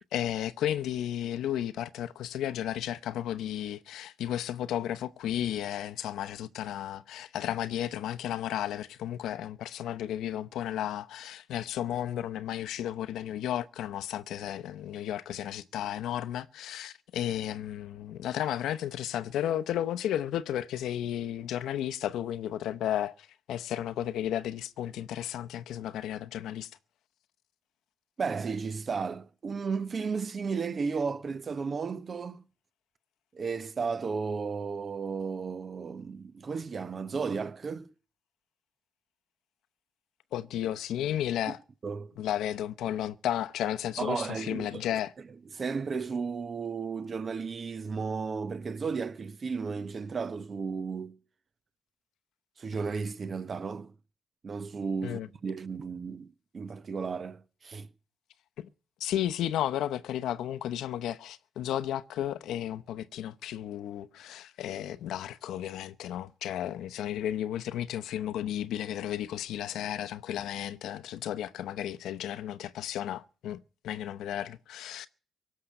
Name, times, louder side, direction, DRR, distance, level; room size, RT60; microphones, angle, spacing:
voice 1, 0.1-26.7 40.3-41.6 42.2-45.1 55.0-55.3 58.6-58.7 59.0-75.1, left 11 dB, 80° left, 0.8 m, -33 dB
voice 2, 28.2-32.4 33.3-37.9 41.8-42.1 44.0-44.8 45.5-51.2 52.6-53.9 54.4-57.9, right 5 dB, 40° right, 1.1 m, -34 dB
17.5 x 6.7 x 9.9 m
cardioid pair, 90°, 0 cm